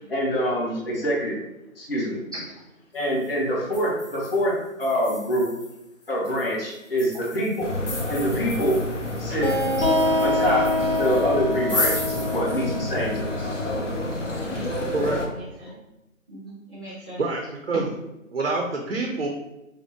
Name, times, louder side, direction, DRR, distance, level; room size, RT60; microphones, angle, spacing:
voice 1, 0.0-1.4 1.8-2.2 2.9-5.5 6.1-7.7 8.1-8.8 9.2-9.6 10.2-13.5 14.3-14.6, equal, 45° left, -4 dB, 1.5 m, -25 dB
sound 1, 3.0-3.3 3.7-12.4, left 2 dB, 25° left, 1.3 m, -35 dB
sound 2, 7.6-15.3, left 1 dB, 60° left, 0.9 m, -30 dB
sound 3, 9.4-14.8, left 1 dB, 85° left, 1.2 m, -26 dB
voice 2, 14.3-15.0 15.3-15.8 16.3-17.2 17.7-17.8, right 1 dB, 5° left, -14 dB, 0.8 m, -38 dB
voice 3, 17.2-17.8 18.3-19.3, right 3 dB, 55° right, 1 dB, 0.7 m, -26 dB
5.4 x 2.1 x 3.5 m, 0.91 s
figure-of-eight pair, 155°, 41 cm